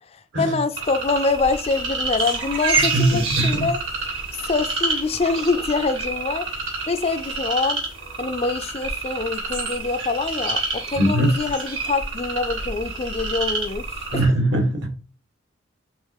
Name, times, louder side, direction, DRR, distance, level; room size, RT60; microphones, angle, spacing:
voice 1, 0.1-3.8 4.3-7.8 8.2-14.2, left 3 dB, 30° left, 0.4 m, -25 dB
sound 1, 0.8-14.3, right 3 dB, 85° right, 3.4 m, -28 dB
voice 2, 2.9-3.7 4.4-4.5 11.0-11.3 14.1-14.9, right 1 dB, 70° right, 1.9 m, -21 dB
5.5 x 3.7 x 4.8 m
head